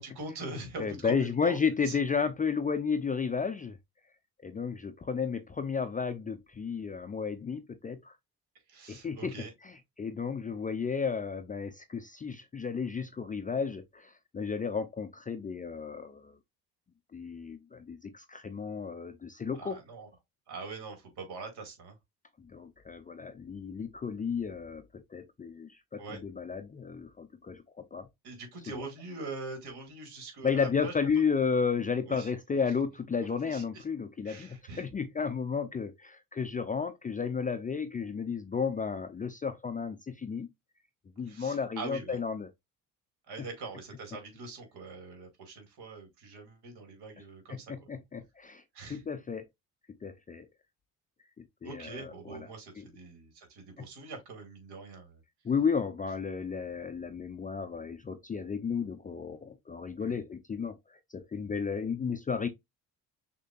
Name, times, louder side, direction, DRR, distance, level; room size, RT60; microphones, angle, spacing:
voice 1, 0.0-1.6 1.8-2.0 8.7-9.5 19.6-20.1 20.5-22.0 26.0-26.2 28.2-30.9 32.1-32.3 33.5-33.8 34.2-34.9 41.2-42.2 43.3-47.9 48.7-49.0 51.6-55.2 60.0-60.2, right 3 dB, 55° right, 2.4 m, -43 dB
voice 2, 0.8-3.8 4.4-8.1 8.9-9.3 9.6-16.4 17.1-19.8 22.4-28.1 28.7-28.8 30.4-40.5 41.2-42.5 43.4-43.5 47.5-49.4 50.0-50.5 51.4-52.5 52.8-52.9 53.8-53.9 55.4-62.5, left 6 dB, 20° left, 0.5 m, -33 dB
6.3 x 2.9 x 2.5 m
figure-of-eight pair, 50°, 46 cm